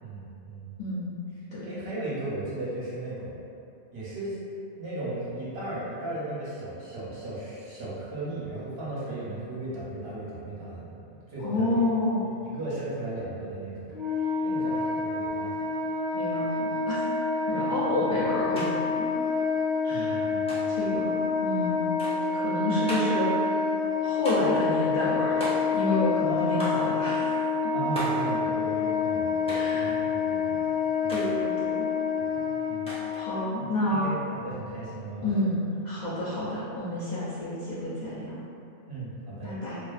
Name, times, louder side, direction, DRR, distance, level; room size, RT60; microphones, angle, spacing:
voice 1, 0.0-0.7 1.6-3.4 3.9-4.4 4.7-11.8 12.4-13.9 14.4-15.6 19.9-20.7 26.2-26.9 27.7-30.7 31.0-31.2 32.2-32.9 33.5-35.4 38.9-39.6, right 2 dB, 65° right, -8 dB, 0.9 m, -36 dB
voice 2, 0.8-1.1 1.5-1.7 11.4-12.2 16.1-17.0 17.5-18.7 19.8-20.3 20.7-21.9 22.3-23.6 24.0-25.5 25.7-27.7 29.5-29.9 31.1-31.9 33.2-34.0 35.2-38.4 39.4-39.8, left 1 dB, 55° left, -11 dB, 0.5 m, -29 dB
Wind instrument woodwind instrument, 13.9-33.4, left 4 dB, 45° right, 0.6 m, -28 dB
sound 1, 18.6-18.7 18.9-19.7 20.5-20.9 22.0-22.3 22.9-23.3 24.3-24.7 25.4-25.9 26.6-26.9 28.0-28.3 29.5-29.8 31.1-31.3 32.9-33.3, equal, 10° left, 0.5 m, -36 dB
2.4 x 2.4 x 2.3 m, 2.6 s
omnidirectional pair, 1.1 m